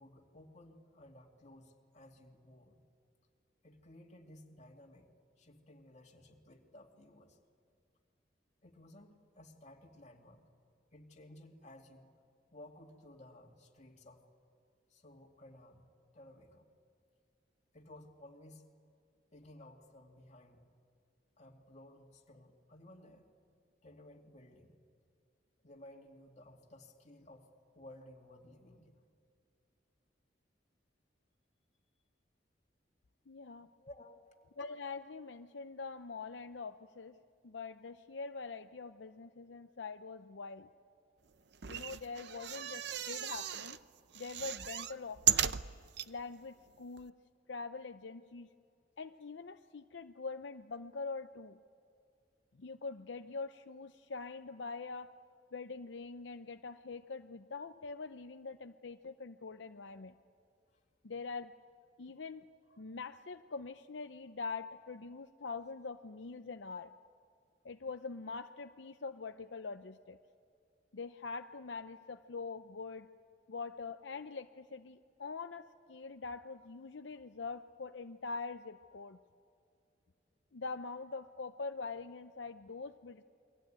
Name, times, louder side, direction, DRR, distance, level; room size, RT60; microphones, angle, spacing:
voice 1, 0.0-2.8 3.6-5.1 5.4-7.4 8.6-10.4 10.9-12.1 12.5-14.3 14.9-16.7 17.7-18.7 19.3-20.6 21.4-23.3 23.8-24.8 25.6-29.0 33.8-34.3 42.3-42.4 60.7-60.8, left 1 dB, 40° left, 1 dB, 2.6 m, -56 dB
voice 2, 33.3-33.7 34.6-37.2 37.4-40.7 41.6-43.8 44.1-45.6 46.1-47.2 47.5-48.5 49.0-51.6 52.5-55.1 55.5-60.1 61.0-61.5 62.0-66.9 67.6-70.2 70.9-73.1 73.5-79.2 80.5-83.2, left 4 dB, 75° left, 8 dB, 0.7 m, -44 dB
sound 1, 41.5-43.8 44.1-46.1 46.7-46.8 47.0-47.1, right 10 dB, 65° right, 0.7 m, -35 dB
29.0 x 23.0 x 9.0 m, 2.3 s
head